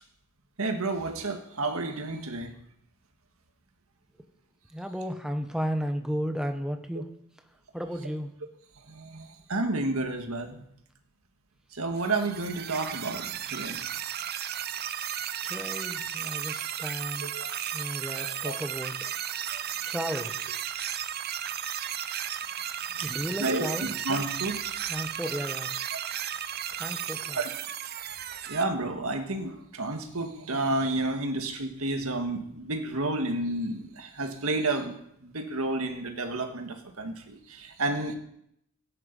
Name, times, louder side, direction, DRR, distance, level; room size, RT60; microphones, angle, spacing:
voice 1, 0.6-2.5 8.9-10.7 11.7-13.8 17.2-17.5 18.2-18.6 19.5-19.6 23.0-23.1 23.4-24.6 27.4-27.5 28.5-34.9 35.2-38.1, right 2 dB, 80° right, 5 dB, 1.9 m, -31 dB
voice 2, 4.7-7.1 7.7-8.3 15.4-17.3 17.7-20.4 23.0-24.0 24.9-25.7 26.8-27.4, equal, 5° right, 6 dB, 1.0 m, -34 dB
sound 1, 12.0-28.6, right 10 dB, 45° right, 0.6 m, -34 dB
17.0 x 10.0 x 5.4 m, 0.74 s
head